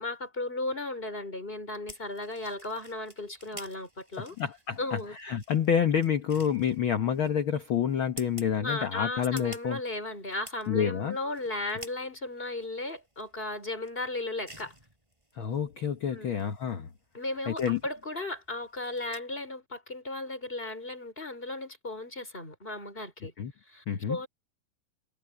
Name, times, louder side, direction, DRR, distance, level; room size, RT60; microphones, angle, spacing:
voice 1, 0.0-4.3 4.8-5.1 8.6-14.7 16.1-16.3 17.1-23.3 23.7-24.3, left 2 dB, 15° left, 4.8 m, -35 dB
sound 1, 1.9-19.2, right 1 dB, 10° right, 5.1 m, -52 dB
voice 2, 4.2-9.8 10.7-11.2 15.4-16.9 17.5-17.8 23.4-23.5 23.9-24.2, left 8 dB, 75° left, 1.1 m, -28 dB
omnidirectional pair, 4.0 m